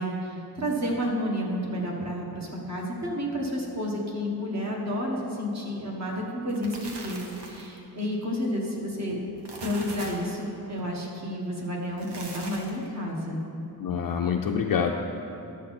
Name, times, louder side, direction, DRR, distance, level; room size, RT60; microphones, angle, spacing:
voice 1, 0.0-9.2 9.6-13.4, equal, 40° right, -2 dB, 1.6 m, -30 dB
sound 1, 6.3-7.8 9.2-10.3 11.8-12.9, right 3 dB, 80° right, 1.2 m, -41 dB
voice 2, 13.8-14.9, left 7 dB, 55° left, 2 dB, 0.5 m, -26 dB
12.0 x 7.4 x 4.2 m, 2.9 s
wide cardioid pair, 155°, 40 cm